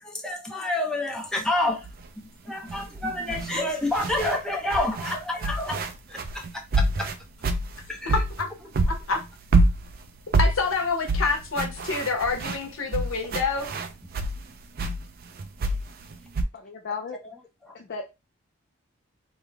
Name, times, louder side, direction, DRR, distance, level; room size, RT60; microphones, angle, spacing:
voice 1, 0.0-1.9 2.5-5.8 6.1-6.2 6.7-6.8 7.9-8.2, left 1 dB, 5° left, 0.6 m, -28 dB
sound 1, 1.8-2.0 2.7-4.4 4.7-8.5 8.7-14.4 14.8-16.4, right 2 dB, 45° right, 0.4 m, -26 dB
voice 2, 8.1-8.5 8.9-9.2 10.4-13.7, left 4 dB, 75° left, 0.9 m, -27 dB
voice 3, 16.5-17.2 17.7-18.1, left 5 dB, 50° left, 0.4 m, -35 dB
3.2 x 2.0 x 3.4 m
head